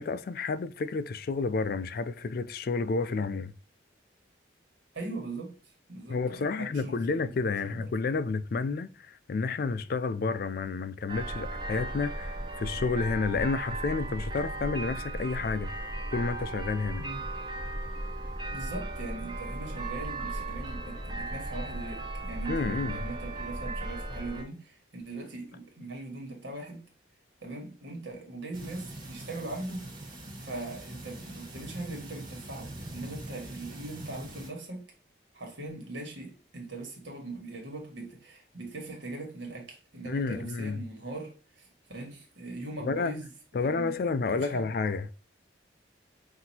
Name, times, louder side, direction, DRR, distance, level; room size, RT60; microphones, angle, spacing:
voice 1, 0.0-3.5 6.1-15.7 16.1-17.0 22.5-23.0 40.1-40.8 42.8-43.1 43.5-45.1, left 4 dB, 50° left, 0.3 m, -30 dB
voice 2, 4.9-5.6 5.9-7.3 7.6-7.9 17.0-17.2 18.5-26.8 27.4-29.9 30.4-34.9 35.3-44.0 44.3-44.7, right 2 dB, 75° right, 1.7 m, -40 dB
sound 1, 11.1-24.4, right 1 dB, 25° right, 0.8 m, -36 dB
sound 2, 28.5-34.5, right 1 dB, 45° right, 1.5 m, -43 dB
5.9 x 2.7 x 2.7 m
head